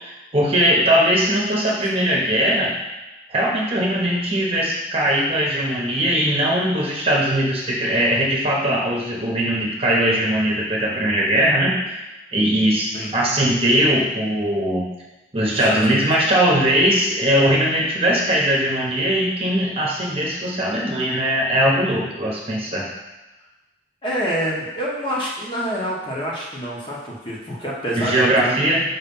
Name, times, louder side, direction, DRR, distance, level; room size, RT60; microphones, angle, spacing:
voice 1, 0.0-2.7 3.3-12.0 12.3-14.9 15.3-22.9 28.0-28.8, right 1 dB, 35° right, -3 dB, 1.0 m, -20 dB
voice 2, 15.5-16.0 24.0-28.5, equal, 30° left, -5 dB, 1.1 m, -27 dB
5.7 x 3.2 x 5.4 m, 1.1 s
head